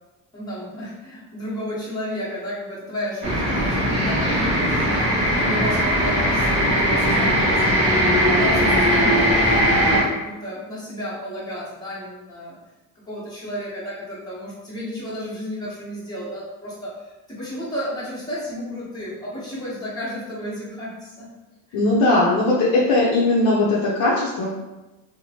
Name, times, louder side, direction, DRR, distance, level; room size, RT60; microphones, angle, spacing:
voice 1, 0.3-12.6 13.1-21.3 21.7-21.8, equal, 10° left, -10 dB, 1.0 m, -32 dB
sound 1, 3.2-10.0, equal, 15° right, 0.7 m, -19 dB
voice 2, 21.7-24.5, left 2 dB, 60° left, -5 dB, 0.7 m, -19 dB
2.9 x 2.1 x 2.8 m, 1.1 s
cardioid pair, 150°, 42 cm